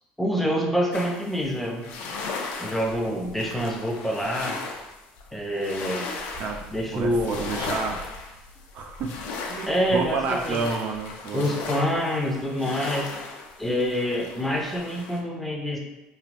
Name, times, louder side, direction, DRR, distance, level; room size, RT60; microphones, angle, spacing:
voice 1, 0.2-1.8 2.6-4.6 5.3-6.1 6.7-7.5 9.7-10.6 11.3-13.1 13.6-15.8, equal, 5° left, 0 dB, 0.5 m, -26 dB
sound 1, 0.9-15.2, left 3 dB, 70° left, 0.5 m, -37 dB
voice 2, 6.9-8.0 8.7-9.1 9.5-11.6, right 4 dB, 55° right, 3 dB, 0.4 m, -30 dB
3.2 x 2.5 x 2.4 m, 0.99 s
cardioid pair, 130°, 3 cm